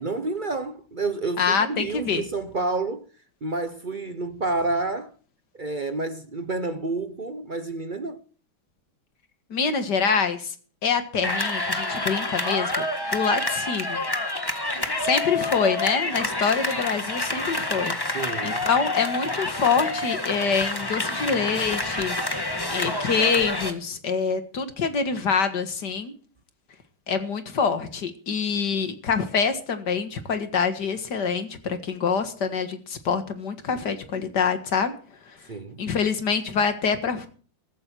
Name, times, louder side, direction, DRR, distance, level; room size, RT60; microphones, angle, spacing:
voice 1, 0.0-3.1 3.4-5.1 5.6-8.2 18.0-18.6 35.5-35.8, right 3 dB, 55° right, 0.5 m, -29 dB
voice 2, 1.4-2.2 9.5-10.5 10.8-12.8 13.1-14.0 15.0-17.9 18.4-22.2 22.7-26.1 27.1-34.9 35.8-37.3, left 5 dB, 55° left, 2.2 m, -25 dB
sound 1, 11.2-23.7, left 2 dB, 15° left, 1.3 m, -28 dB
15.0 x 14.0 x 4.5 m
omnidirectional pair, 2.3 m